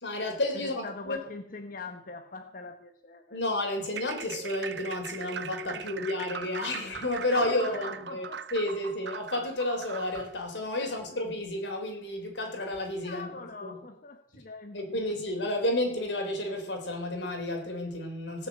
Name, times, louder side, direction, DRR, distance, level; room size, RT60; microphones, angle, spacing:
voice 1, 0.0-1.2 3.3-13.8 14.3-14.4 14.7-18.5, left 1 dB, 85° left, 3.6 m, -31 dB
voice 2, 0.5-3.4 5.7-5.9 7.2-8.6 10.8-10.9 13.0-15.0, left 3 dB, 50° left, 1.0 m, -43 dB
sound 1, 3.9-10.3, right 7 dB, 70° right, 0.6 m, -40 dB
18.5 x 6.8 x 8.2 m
head